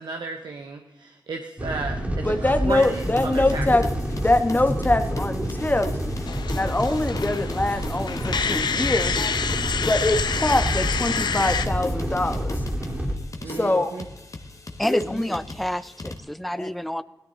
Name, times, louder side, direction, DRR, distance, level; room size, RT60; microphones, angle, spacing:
voice 1, 0.0-3.7 13.4-14.0, right 4 dB, 75° right, 4 dB, 1.1 m, -34 dB
sound 1, 1.6-13.2, equal, 20° right, 3.0 m, -28 dB
voice 2, 2.2-3.9 4.2-5.9 6.2-9.1 9.6-12.6 13.5-13.9 14.9-15.3 16.6-16.7, left 2 dB, 25° left, 8 dB, 1.4 m, -24 dB
sound 2, 2.7-16.2, left 2 dB, 45° left, 1.7 m, -39 dB
sound 3, 6.3-11.7, left 6 dB, 80° left, 0.8 m, -28 dB
voice 3, 14.8-17.0, equal, ahead, 15 dB, 0.5 m, -28 dB
17.0 x 13.0 x 4.0 m, 1.0 s
cardioid pair, 60°, 7 cm